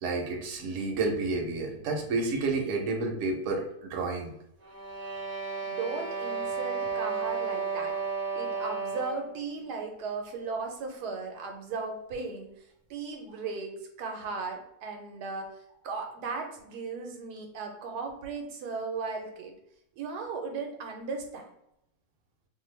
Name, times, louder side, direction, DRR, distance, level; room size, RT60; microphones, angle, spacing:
voice 1, 0.0-4.3, right 3 dB, 60° right, 1 dB, 0.9 m, -30 dB
sound 1, 4.6-9.4, right 5 dB, 45° right, 0.5 m, -33 dB
voice 2, 5.6-8.0 8.3-12.5 12.9-15.5 15.8-19.5 20.0-21.5, right 4 dB, 80° right, 3 dB, 1.1 m, -36 dB
2.7 x 2.2 x 3.1 m, 0.76 s
omnidirectional pair, 1.7 m